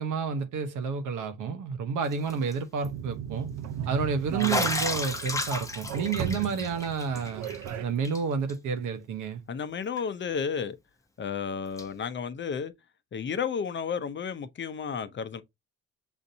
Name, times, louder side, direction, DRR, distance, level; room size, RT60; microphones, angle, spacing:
voice 1, 0.0-3.5 3.9-7.5 7.8-9.4, right 5 dB, 85° right, 1.0 m, -30 dB
Bathtub (filling or washing), 2.1-2.5 2.8-2.9 4.4-7.7 8.0-8.2 8.5-8.6 10.0-10.1 11.8-11.9, left 2 dB, 10° left, 0.8 m, -32 dB
sound 1, 2.8-7.8, right 8 dB, 65° right, 0.6 m, -36 dB
voice 2, 9.5-10.8 11.2-12.7 13.1-15.4, left 6 dB, 40° left, 0.6 m, -32 dB
7.1 x 2.6 x 2.7 m
cardioid pair, 90°, 30 cm